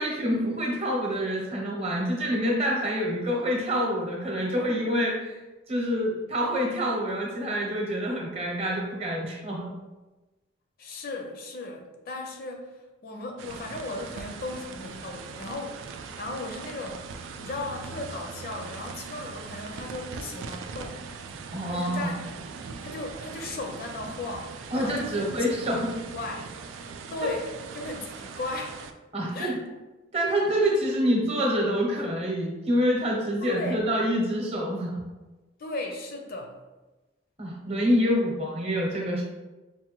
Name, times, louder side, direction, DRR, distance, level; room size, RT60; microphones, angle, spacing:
voice 1, 0.0-5.4 5.7-9.7 21.5-22.1 24.7-26.0 27.2-27.3 29.1-29.6 30.1-35.0 37.4-39.2, equal, 35° right, -2 dB, 0.8 m, -27 dB
voice 2, 10.8-21.1 21.7-22.4 22.8-25.3 25.6-25.7 26.1-26.5 27.1-27.5 27.8-28.8 29.3-29.6 33.4-33.8 35.6-36.6, left 2 dB, 50° left, 3 dB, 0.5 m, -36 dB
sound 1, 13.4-28.9, right 5 dB, 80° right, 0.3 m, -40 dB
4.6 x 2.2 x 2.9 m, 1.1 s
head